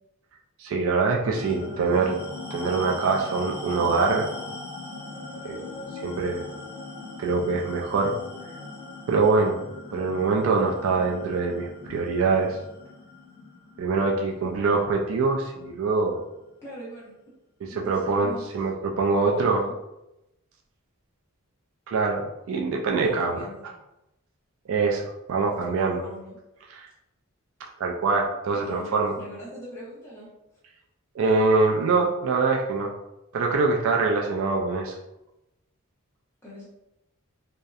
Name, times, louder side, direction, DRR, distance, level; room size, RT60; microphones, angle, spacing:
voice 1, 0.6-2.1 2.5-4.3 5.4-5.6 6.0-6.5 7.2-8.1 9.1-9.6 9.9-12.6 13.8-16.2 17.7-19.6 21.9-23.4 24.7-26.0 26.7-26.9 27.8-29.1 31.2-32.9 33.3-34.9, right 4 dB, 65° right, 1 dB, 0.3 m, -24 dB
sound 1, 1.3-16.1, left 3 dB, 10° right, 0.9 m, -40 dB
voice 2, 1.5-2.2 3.1-3.3 14.4-14.8 16.6-17.1 17.7-18.4 19.1-19.7 22.9-23.7 25.5-26.4 28.5-30.3 36.4-36.7, equal, 10° left, -8 dB, 0.8 m, -42 dB
2.7 x 2.1 x 2.3 m, 0.90 s
head